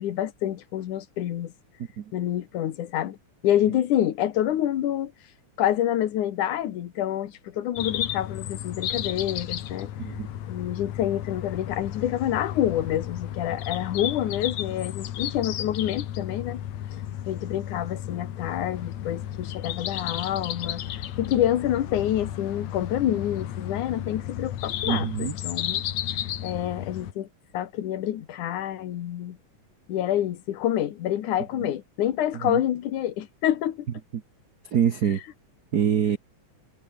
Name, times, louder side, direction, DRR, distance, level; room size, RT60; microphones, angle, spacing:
voice 1, 0.0-1.5 2.1-3.2 3.4-5.1 5.6-9.9 10.5-16.6 17.3-25.9 26.4-27.3 27.5-29.4 29.9-33.9, left 11 dB, 90° left, 2.9 m, -27 dB
sound 1, 7.8-27.1, left 11 dB, 70° left, 2.6 m, -33 dB
voice 2, 24.9-25.4 31.6-31.7 32.3-32.6 34.1-34.2 34.7-35.2 35.7-36.2, right 8 dB, 90° right, 0.8 m, -25 dB
omnidirectional pair, 3.4 m